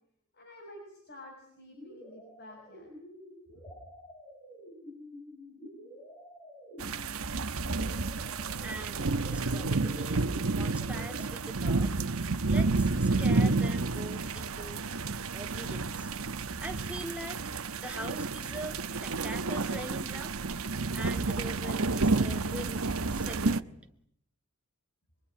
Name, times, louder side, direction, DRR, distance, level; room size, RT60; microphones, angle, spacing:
voice 1, 0.3-2.9 3.5-3.6, left 1 dB, 50° left, 1 dB, 6.3 m, -50 dB
sound 1, 1.7-11.2, equal, 15° left, 5.6 m, -49 dB
sound 2, 6.8-23.6, right 3 dB, 75° right, 1.1 m, -30 dB
voice 2, 8.6-10.3 10.5-11.9 12.5-14.8 15.3-16.1 16.6-17.4 17.8-20.3 20.9-22.8 23.1-23.7, right 1 dB, 5° right, 3 dB, 2.2 m, -43 dB
25.0 x 23.5 x 9.9 m, 0.71 s
head